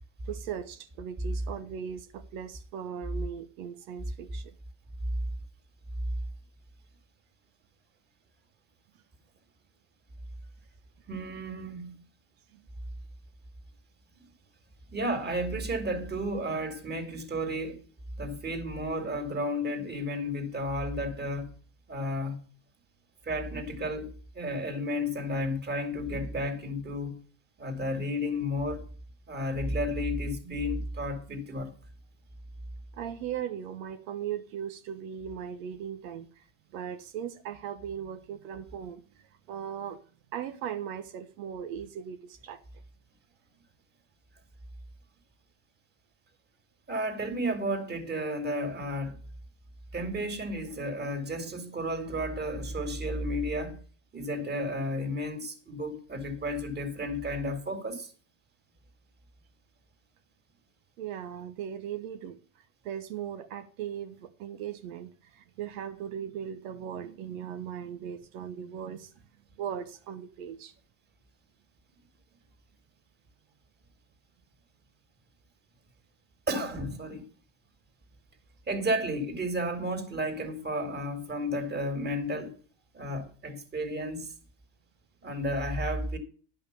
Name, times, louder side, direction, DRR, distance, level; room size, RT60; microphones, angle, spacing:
voice 1, 0.2-4.5 12.5-12.6 32.9-36.5 36.7-40.0 40.3-42.6 61.0-69.1 69.6-70.7 78.7-78.8, right 9 dB, 85° right, 1.2 m, -38 dB
voice 2, 11.1-11.9 14.2-14.3 14.9-17.8 18.2-21.5 21.9-22.4 23.2-27.2 27.6-28.8 29.3-31.7 46.9-49.2 49.9-53.8 54.1-58.1 76.5-77.2 78.7-82.5 82.9-84.3 85.2-86.2, equal, 25° right, 2.5 m, -32 dB
11.0 x 5.7 x 6.8 m
supercardioid pair, 125°, 41 cm